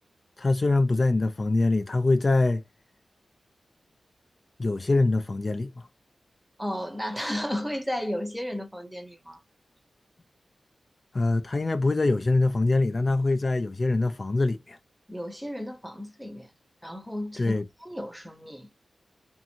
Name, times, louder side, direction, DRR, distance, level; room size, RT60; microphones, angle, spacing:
voice 1, 0.4-2.6 4.6-5.7 11.1-14.8 17.4-17.6, left 2 dB, 40° left, 0.4 m, -24 dB
voice 2, 6.6-9.4 15.1-16.5 16.8-18.7, equal, ahead, 0.8 m, -34 dB
2.6 x 2.5 x 2.8 m
cardioid pair, 65°, 0 cm